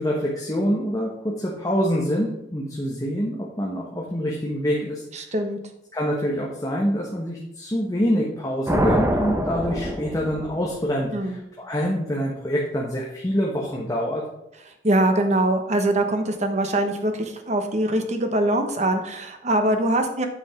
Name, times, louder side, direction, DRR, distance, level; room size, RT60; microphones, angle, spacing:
voice 1, 0.0-5.0 5.9-14.2, equal, 20° left, -3 dB, 1.2 m, -26 dB
voice 2, 5.1-5.6 11.1-11.4 14.8-20.3, right 1 dB, 40° right, 6 dB, 1.1 m, -23 dB
sound 1, 8.7-10.9, equal, 15° right, 0.9 m, -24 dB
8.7 x 5.2 x 5.2 m, 0.84 s
head